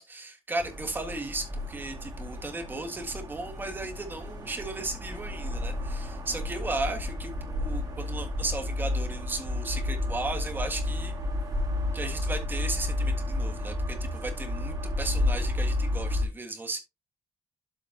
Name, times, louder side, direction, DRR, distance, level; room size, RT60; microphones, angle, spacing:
voice 1, 0.0-11.1 11.9-16.8, right 2 dB, 20° right, 1.7 m, -35 dB
sound 1, 0.6-16.2, left 2 dB, 35° right, 2.2 m, -31 dB
12.5 x 4.3 x 2.8 m
cardioid pair, 170°, 11 cm